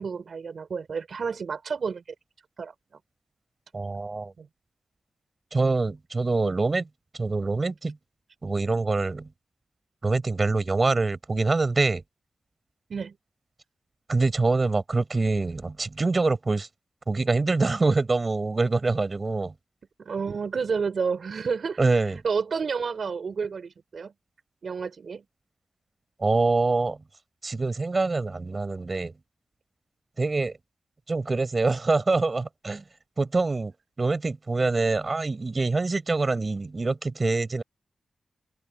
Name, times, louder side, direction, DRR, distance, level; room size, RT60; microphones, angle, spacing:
voice 1, 0.0-2.0 2.6-2.7 4.4-4.5 12.9-13.1 20.0-21.8 22.2-24.1 24.6-25.2, right 5 dB, 65° right, 4.5 m, -30 dB
voice 2, 3.7-4.3 5.5-6.9 7.1-8.0 8.4-9.3 10.0-12.0 14.1-16.7 17.1-19.5 21.8-22.2 26.2-27.0 27.4-29.1 30.2-30.6 31.1-32.8 33.2-33.7 34.0-37.6, right 3 dB, 35° right, 5.8 m, -25 dB
wide cardioid pair, 85°, 0 cm